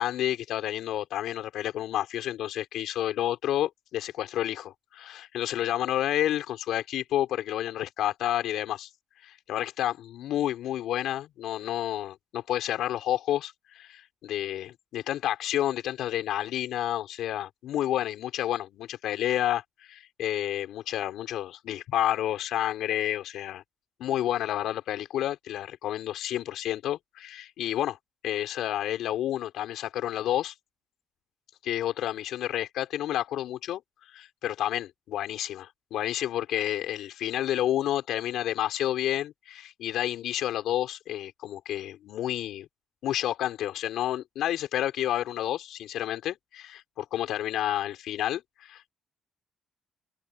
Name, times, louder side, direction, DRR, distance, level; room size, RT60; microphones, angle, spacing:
voice 1, 0.0-8.9 9.2-23.6 24.0-28.0 28.2-30.5 31.6-42.7 43.0-48.9, left 12 dB, 80° left, 5.1 m, -30 dB
cardioid pair, 90°, 0 cm